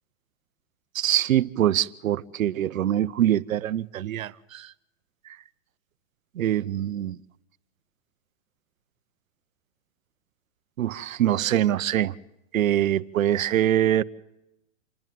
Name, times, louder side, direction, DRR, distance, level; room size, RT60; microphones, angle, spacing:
voice 1, 0.9-4.7 6.4-7.2 10.8-12.1 12.5-14.0, right 12 dB, 90° right, 0.9 m, -24 dB
28.0 x 10.5 x 9.3 m
hypercardioid pair, 155°, 39 cm